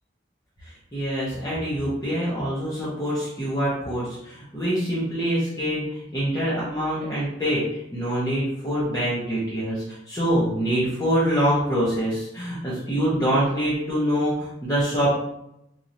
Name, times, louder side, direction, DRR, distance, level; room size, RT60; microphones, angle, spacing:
voice 1, 0.9-15.1, equal, 20° left, -10 dB, 1.0 m, -25 dB
4.7 x 2.7 x 2.7 m, 0.79 s
head